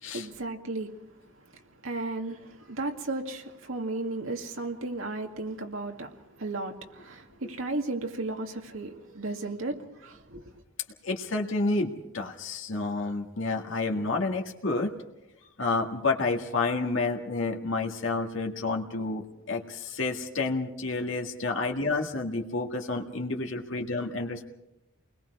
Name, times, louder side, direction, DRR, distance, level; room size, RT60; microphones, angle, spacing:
voice 1, 0.1-10.6, right 2 dB, 85° right, 2.3 m, -35 dB
voice 2, 11.0-14.9 15.6-24.5, left 3 dB, 75° left, 2.0 m, -30 dB
29.5 x 21.0 x 4.8 m
head